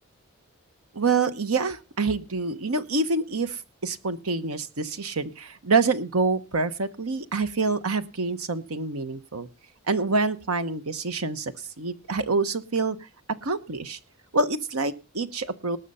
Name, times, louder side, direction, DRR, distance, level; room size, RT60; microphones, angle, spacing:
voice 1, 0.9-9.5 9.9-13.0 13.4-14.0 14.3-15.8, right 3 dB, 80° right, 11 dB, 1.0 m, -26 dB
19.0 x 6.5 x 5.6 m, 0.33 s
head